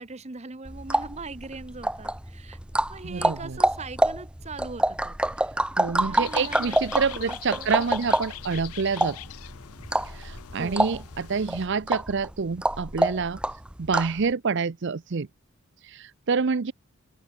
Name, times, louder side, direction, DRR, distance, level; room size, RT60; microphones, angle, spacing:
voice 1, 0.0-2.6 2.9-5.3 6.0-7.9 10.5-10.9, right 3 dB, 30° right, 0.9 m, -41 dB
sound 1, 0.7-14.2, right 1 dB, 5° right, 0.5 m, -27 dB
voice 2, 3.0-3.6 5.8-9.2 10.0-13.4 13.8-15.3 15.8-16.7, right 5 dB, 55° right, 0.6 m, -27 dB
sound 2, 6.2-11.7, left 11 dB, 85° left, 0.6 m, -42 dB
open air
head